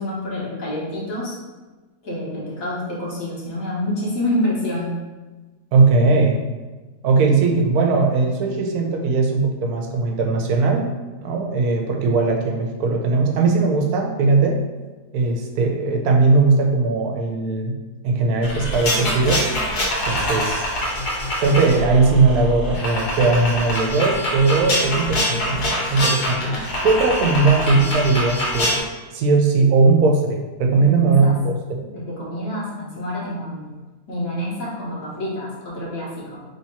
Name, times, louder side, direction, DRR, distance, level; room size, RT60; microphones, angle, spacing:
voice 1, 0.0-1.3 2.0-4.9 30.7-31.4 31.9-33.7 34.1-36.4, left 1 dB, 65° left, -6 dB, 1.6 m, -27 dB
voice 2, 5.7-6.4 7.0-10.9 11.2-14.6 15.1-17.8 18.0-19.4 20.1-20.7 21.4-28.8 29.1-31.5, right 3 dB, 85° right, 2 dB, 1.2 m, -19 dB
sound 1, 18.4-28.8, left 1 dB, 90° left, 1.6 m, -24 dB
3.4 x 2.8 x 4.4 m, 1.2 s
omnidirectional pair, 1.6 m